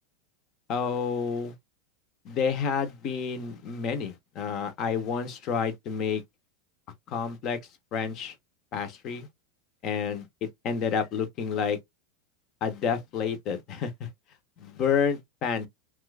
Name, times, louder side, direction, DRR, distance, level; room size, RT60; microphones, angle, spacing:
voice 1, 0.7-1.5 2.2-6.2 7.1-7.6 7.9-8.3 8.7-9.3 9.8-11.8 12.6-14.1 14.6-15.7, left 6 dB, 40° left, 0.8 m, -29 dB
3.0 x 2.4 x 3.2 m
supercardioid pair, 145°, 0 cm